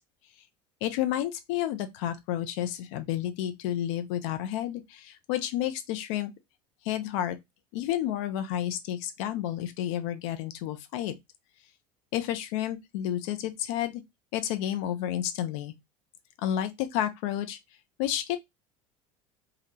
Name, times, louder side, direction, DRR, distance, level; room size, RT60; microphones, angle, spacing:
voice 1, 0.8-6.3 6.8-7.4 7.7-11.1 12.1-14.0 14.3-15.7 16.4-17.6 18.0-18.4, left 11 dB, 55° left, 0.6 m, -30 dB
3.5 x 2.4 x 2.8 m
figure-of-eight pair, 70°, 18 cm